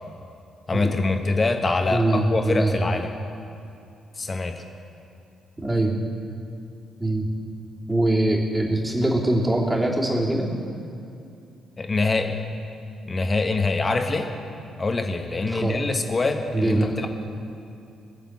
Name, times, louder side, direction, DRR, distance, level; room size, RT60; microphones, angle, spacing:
voice 1, 0.7-3.2 4.2-4.6 11.8-12.4 13.0-14.3 14.8-17.1, left 3 dB, 30° left, 5 dB, 1.5 m, -24 dB
voice 2, 1.9-2.7 5.6-6.0 7.0-7.3 7.9-10.5 15.5-15.8 16.5-17.0, right 1 dB, 15° right, -2 dB, 3.0 m, -23 dB
22.5 x 7.7 x 7.6 m, 2.6 s
figure-of-eight pair, 40°, 0 cm